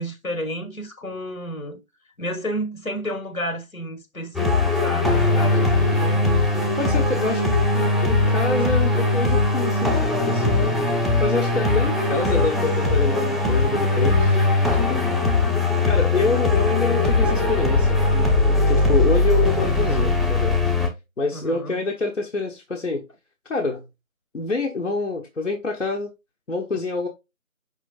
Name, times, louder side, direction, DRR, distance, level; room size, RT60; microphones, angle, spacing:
voice 1, 0.0-1.8 2.2-6.4 21.3-21.8, equal, 85° left, 1.4 m, -31 dB
sound 1, 4.3-20.9, left 2 dB, ahead, 0.5 m, -20 dB
voice 2, 6.0-6.3 6.8-7.5 8.0-10.8 11.2-14.4 14.7-15.0 15.8-18.3 18.7-20.6 21.2-23.1 23.5-23.9 24.3-26.1 26.5-27.1, left 3 dB, 65° left, 0.9 m, -26 dB
5.1 x 3.2 x 2.3 m
figure-of-eight pair, 175°, 41 cm